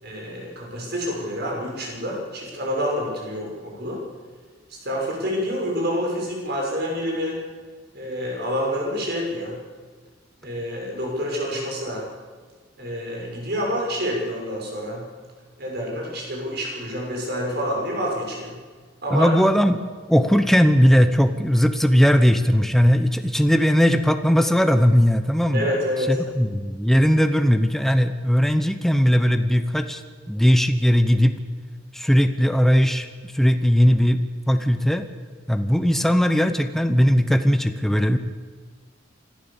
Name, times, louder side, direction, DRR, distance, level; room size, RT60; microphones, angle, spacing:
voice 1, 0.0-4.0 4.8-7.4 7.9-9.6 10.4-12.1 12.8-15.0 15.6-18.6 19.0-19.3 25.5-26.2, equal, 60° right, -1 dB, 6.2 m, -27 dB
voice 2, 19.1-19.8 20.1-25.7 26.1-30.0 30.3-31.3 31.9-33.1 33.3-35.0 35.5-38.2, equal, ahead, 8 dB, 1.0 m, -18 dB
24.5 x 15.0 x 7.2 m, 1.5 s
head